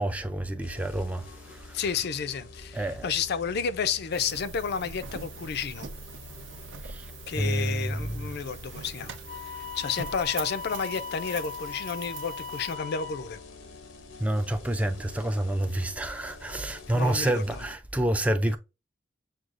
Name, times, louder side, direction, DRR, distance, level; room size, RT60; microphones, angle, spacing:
voice 1, 0.0-1.8 2.7-3.1 6.8-7.1 7.4-8.3 14.2-18.6, right 1 dB, 5° right, 0.3 m, -28 dB
sound 1, 0.6-17.7, left 3 dB, 90° left, 0.8 m, -48 dB
voice 2, 1.7-5.9 7.3-9.1 9.5-13.4 16.9-17.6, left 6 dB, 60° left, 0.4 m, -31 dB
sound 2, 4.1-12.8, right 5 dB, 80° right, 0.6 m, -43 dB
Wind instrument woodwind instrument, 9.3-13.4, left 6 dB, 45° right, 0.8 m, -39 dB
6.0 x 2.3 x 2.5 m
head